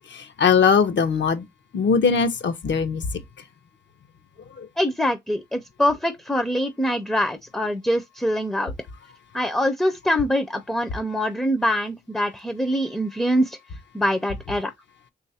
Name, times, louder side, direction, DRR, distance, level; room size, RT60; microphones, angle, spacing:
voice 1, 0.1-1.4 1.7-3.1 4.6-4.7, left 6 dB, 80° left, 0.7 m, -20 dB
voice 2, 4.8-8.7 9.3-13.6 13.9-14.7, equal, 5° left, 0.4 m, -24 dB
3.2 x 2.4 x 4.0 m
wide cardioid pair, 120°, 18 cm